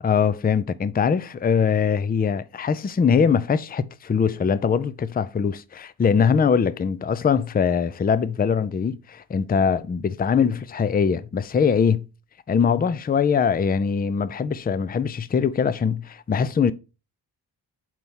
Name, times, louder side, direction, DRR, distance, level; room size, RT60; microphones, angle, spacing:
voice 1, 0.0-12.0 12.5-16.7, left 6 dB, 25° left, 0.3 m, -22 dB
4.6 x 4.2 x 5.4 m
wide cardioid pair, 95°, 44 cm